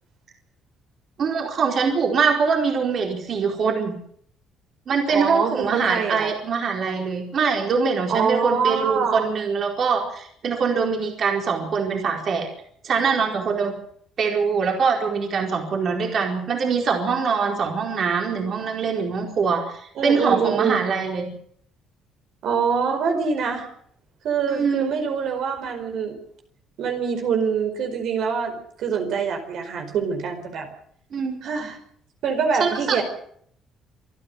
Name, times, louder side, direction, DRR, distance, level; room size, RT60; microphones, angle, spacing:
voice 1, 1.2-3.9 4.9-12.5 12.8-13.7 14.2-21.3 24.5-24.9 31.1-31.4 32.6-33.0, right 5 dB, 50° right, 2 dB, 4.6 m, -23 dB
voice 2, 5.1-6.3 8.1-9.3 20.0-20.8 22.4-23.7 24.2-26.2 26.8-30.7 31.4-31.8 32.2-33.0, right 6 dB, 65° right, 5 dB, 4.8 m, -24 dB
27.0 x 10.5 x 9.3 m, 0.65 s
cardioid pair, 110°, 0 cm